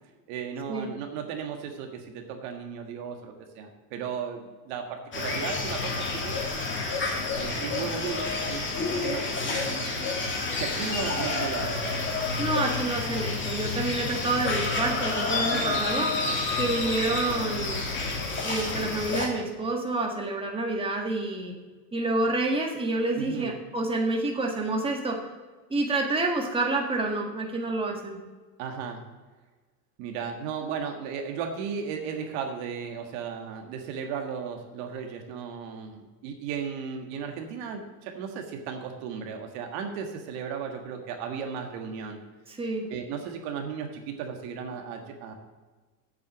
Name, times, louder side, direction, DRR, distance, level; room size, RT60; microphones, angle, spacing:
voice 1, 0.3-6.4 7.3-9.9 10.6-12.0 15.5-15.8 23.1-23.5 28.6-29.0 30.0-42.2 42.9-45.3, right 6 dB, 60° right, 4 dB, 1.7 m, -35 dB
sound 1, 5.1-19.3, left 3 dB, 25° left, 2.5 m, -29 dB
voice 2, 12.4-16.1 16.6-17.8 18.4-21.5 21.9-25.2 25.7-28.2 42.5-42.8, right 2 dB, 10° right, 1 dB, 1.7 m, -28 dB
8.2 x 6.9 x 7.2 m, 1.3 s
supercardioid pair, 110°, 48 cm